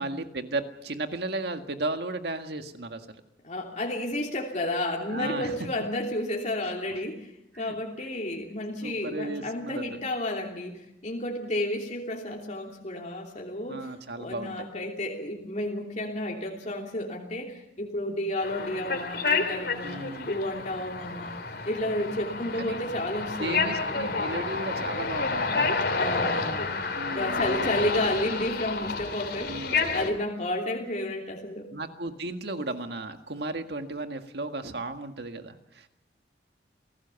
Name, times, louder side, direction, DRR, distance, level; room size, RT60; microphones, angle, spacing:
voice 1, 0.0-3.1 5.1-5.7 6.9-7.0 7.5-7.8 8.8-9.8 13.7-14.7 19.8-20.4 22.6-22.8 23.4-25.7 26.9-27.8 29.5-29.8 31.7-35.9, right 2 dB, 60° right, 6 dB, 1.8 m, -35 dB
voice 2, 3.4-21.3 21.7-24.0 26.0-26.7 27.1-29.6 29.9-31.7, left 1 dB, 40° left, -1 dB, 2.9 m, -32 dB
sound 1, 18.4-30.1, left 4 dB, 60° left, 3.2 m, -30 dB
28.0 x 17.5 x 7.1 m, 0.86 s
head